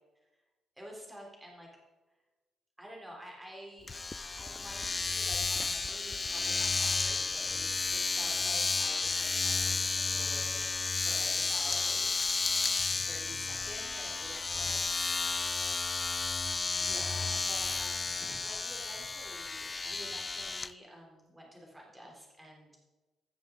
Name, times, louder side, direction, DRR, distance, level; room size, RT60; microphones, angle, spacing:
voice 1, 0.8-1.7 2.8-12.4 12.9-15.6 16.7-22.9, equal, 10° right, -2 dB, 3.2 m, -50 dB
Domestic sounds home sounds, 3.9-20.7, left 4 dB, 30° left, 0.3 m, -32 dB
16.0 x 6.7 x 3.8 m, 1.2 s
cardioid pair, 90°, 0 cm